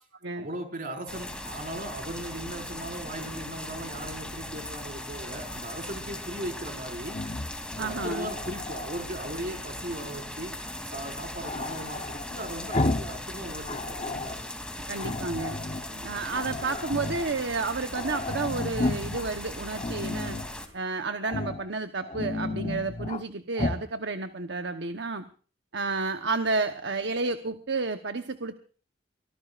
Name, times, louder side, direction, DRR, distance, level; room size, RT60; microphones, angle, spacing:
voice 1, 0.3-7.2 7.8-10.5 10.9-14.4 15.9-16.5, right 1 dB, 50° right, 3 dB, 5.2 m, -38 dB
sound 1, 1.1-20.7, left 1 dB, 5° left, 2.9 m, -39 dB
Growling, 7.1-9.1 11.4-13.2 13.5-14.4 15.0-15.9 16.3-17.3 17.6-17.7 17.9-19.3 19.7-20.5 21.2-21.7 22.0-23.2 23.6-23.9, left 2 dB, 35° left, 0.9 m, -32 dB
voice 2, 7.8-8.3 14.9-15.6 16.0-20.4 20.7-25.3 25.7-28.6, right 3 dB, 70° right, 7 dB, 1.1 m, -31 dB
24.0 x 18.0 x 2.5 m, 0.41 s
head